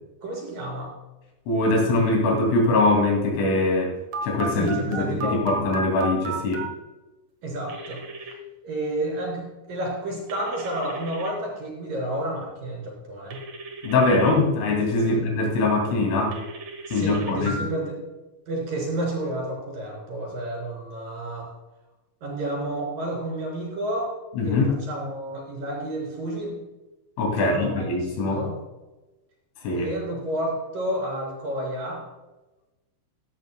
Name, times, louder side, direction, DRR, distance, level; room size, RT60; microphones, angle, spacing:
voice 1, 0.2-0.9 4.5-5.5 7.4-8.0 8.6-13.4 15.1-15.2 16.9-18.0 18.5-21.5 22.2-24.1 24.4-24.6 24.9-26.6 27.4-27.9 28.3-28.6 29.8-32.0, right 1 dB, 45° right, -2 dB, 5.2 m, -30 dB
voice 2, 1.5-3.9 4.2-6.6 13.8-16.4 16.9-17.6 24.4-24.8 27.2-28.4 29.6-29.9, left 2 dB, 80° left, 0 dB, 5.2 m, -22 dB
Telephone, 4.1-6.7 7.7-8.3 10.3-11.3 13.3-14.3 16.3-17.6, right 3 dB, 75° right, 1.5 m, -34 dB
15.5 x 13.0 x 2.3 m, 1.1 s
omnidirectional pair, 5.7 m